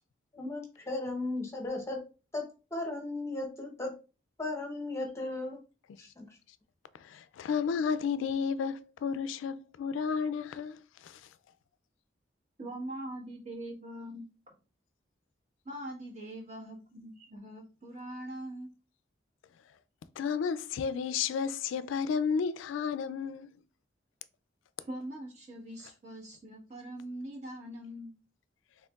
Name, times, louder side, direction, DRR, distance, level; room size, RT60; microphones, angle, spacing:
voice 1, 0.3-2.0 2.3-3.9 4.4-5.6 6.0-6.4, left 2 dB, 15° left, 0.8 m, -36 dB
voice 2, 6.9-11.3 20.2-23.6, left 6 dB, 90° left, 0.3 m, -32 dB
voice 3, 12.6-14.2 15.6-18.7 24.9-28.1, right 1 dB, 35° right, 1.4 m, -42 dB
4.3 x 3.3 x 2.3 m
head